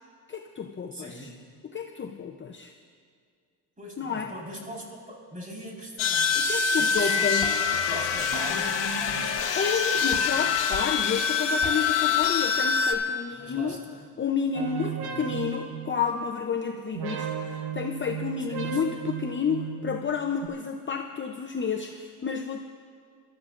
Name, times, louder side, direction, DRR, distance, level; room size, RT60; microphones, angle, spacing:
voice 1, 0.3-1.3 1.6-2.7 4.0-4.3 6.4-7.7 9.5-13.8 14.2-22.7, left 6 dB, 25° left, 4 dB, 0.7 m, -30 dB
voice 2, 0.9-1.4 3.8-6.4 6.8-7.5 7.9-9.8 13.3-14.1 15.0-15.3 18.5-18.8, right 1 dB, 15° right, -3 dB, 4.6 m, -41 dB
sound 1, 6.0-12.9, left 6 dB, 65° left, 1.5 m, -25 dB
sound 2, 14.5-16.5 16.9-20.5, right 8 dB, 55° right, 1.7 m, -35 dB
29.0 x 13.0 x 2.6 m, 2.1 s
cardioid pair, 95°, 46 cm